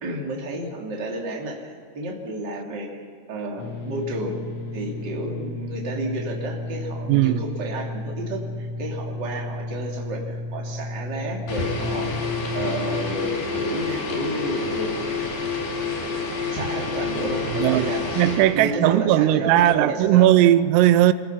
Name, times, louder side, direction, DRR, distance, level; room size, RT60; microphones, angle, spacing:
voice 1, 0.0-4.4 4.7-12.1 12.5-15.0 16.5-20.3, right 1 dB, 25° right, 2.8 m, -31 dB
sound 1, 3.6-13.2, left 1 dB, 80° left, 5.3 m, -33 dB
voice 2, 7.1-7.4 13.9-14.0 17.6-17.9 18.2-21.1, right 14 dB, 90° right, 3.4 m, -17 dB
sound 2, 11.5-18.6, left 5 dB, 55° left, 4.2 m, -28 dB
27.0 x 22.0 x 5.9 m
omnidirectional pair, 5.8 m